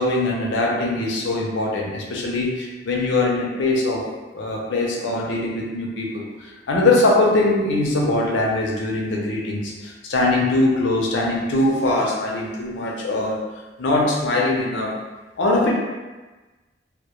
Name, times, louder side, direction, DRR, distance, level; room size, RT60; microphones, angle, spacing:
voice 1, 0.0-4.0 4.3-13.4 13.8-14.9 15.4-15.7, left 2 dB, 80° left, -2 dB, 0.5 m, -22 dB
2.1 x 2.1 x 2.8 m, 1.2 s
head